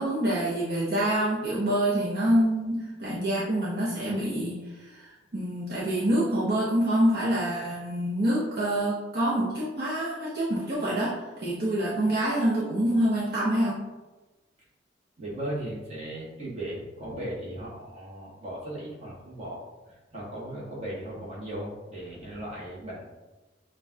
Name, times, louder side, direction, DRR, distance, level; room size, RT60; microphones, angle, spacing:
voice 1, 0.0-4.6 4.9-13.8, right 1 dB, 55° right, -8 dB, 0.9 m, -26 dB
voice 2, 15.2-23.0, right 1 dB, 35° right, -6 dB, 1.4 m, -37 dB
6.8 x 2.4 x 2.8 m, 1.2 s
head